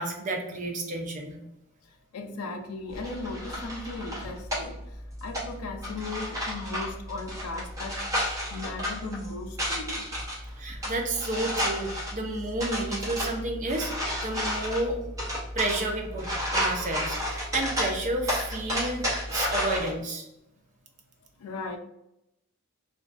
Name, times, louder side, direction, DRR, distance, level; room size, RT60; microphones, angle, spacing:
voice 1, 0.0-1.4 10.6-13.9 14.2-15.0 15.5-16.3 16.5-19.0 19.3-20.2, right 2 dB, 35° right, 2 dB, 0.4 m, -31 dB
voice 2, 2.1-4.8 5.2-8.0 8.5-10.1 21.4-21.8, left 3 dB, 75° left, 5 dB, 0.4 m, -37 dB
sound 1, 2.9-19.9, equal, 15° right, 0.9 m, -32 dB
2.4 x 2.2 x 2.4 m, 0.84 s
head